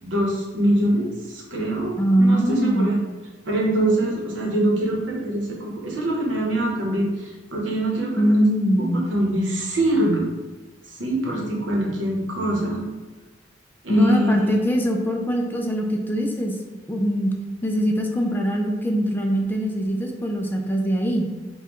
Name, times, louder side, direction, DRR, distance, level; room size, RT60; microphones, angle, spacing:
voice 1, 0.0-3.0 3.5-8.4 8.8-10.3 10.9-12.8 13.8-14.6, right 1 dB, 85° right, -2 dB, 1.0 m, -23 dB
voice 2, 2.0-2.9 8.2-9.1 13.9-16.6 16.9-17.3 17.6-21.3, equal, 10° left, 1 dB, 0.4 m, -22 dB
5.3 x 2.3 x 3.0 m, 1.2 s
head